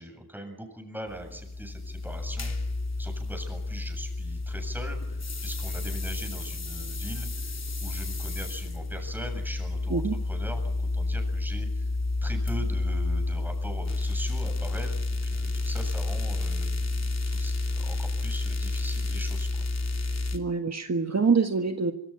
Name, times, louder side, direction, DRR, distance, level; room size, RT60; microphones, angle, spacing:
voice 1, 0.0-2.5 3.0-11.9 12.2-19.6, right 1 dB, 5° right, 5 dB, 7.7 m, -41 dB
sound 1, 1.1-20.4, left 2 dB, 45° left, 3.1 m, -30 dB
voice 2, 20.3-21.9, right 5 dB, 45° right, 6 dB, 1.6 m, -25 dB
26.0 x 25.5 x 6.0 m, 0.82 s
wide cardioid pair, 95°, 37 cm